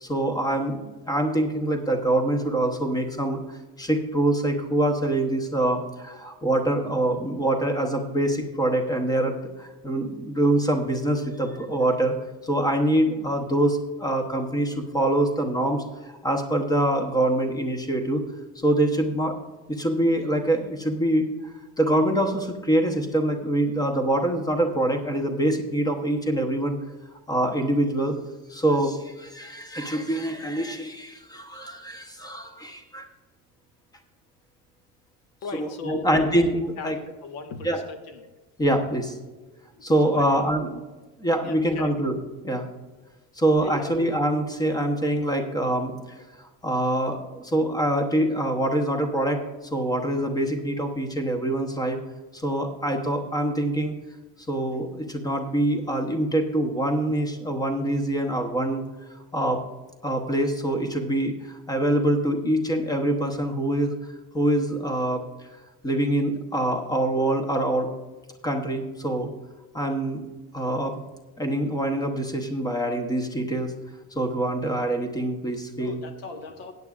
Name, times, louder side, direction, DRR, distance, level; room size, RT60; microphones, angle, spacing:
voice 1, 0.0-12.1 12.4-18.2 18.6-19.3 19.7-21.3 21.8-26.8 27.3-28.2 28.5-33.1 35.5-37.0 37.6-37.8 38.6-39.2 39.8-40.8 41.2-42.2 42.4-42.7 43.4-45.9 46.4-49.4 49.7-52.0 52.3-53.9 54.5-58.8 59.3-59.6 60.0-63.9 64.3-65.2 65.8-67.9 68.4-69.3 69.7-70.2 70.5-71.0 71.4-73.7 74.1-76.0, right 1 dB, 10° left, 5 dB, 0.9 m, -25 dB
voice 2, 35.4-36.2 36.8-37.0 37.2-38.2 39.7-40.2 41.4-41.9 43.6-43.9 75.8-76.7, left 3 dB, 85° left, 6 dB, 1.5 m, -37 dB
16.0 x 9.6 x 2.5 m, 1.2 s
cardioid pair, 175°, 41 cm